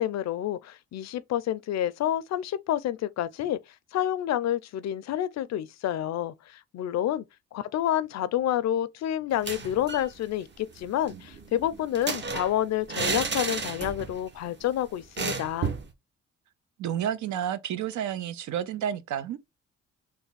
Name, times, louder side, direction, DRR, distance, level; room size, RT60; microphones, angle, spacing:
voice 1, 0.0-3.6 3.9-7.2 7.5-15.7, left 11 dB, 60° left, 0.5 m, -29 dB
sound 1, 9.3-10.1 10.4-10.5 10.8-14.2 14.5-14.7 15.2-15.9, right 4 dB, 35° right, 0.8 m, -32 dB
voice 2, 16.8-19.4, right 10 dB, 75° right, 0.6 m, -30 dB
3.3 x 2.2 x 3.9 m
cardioid pair, 90°, 30 cm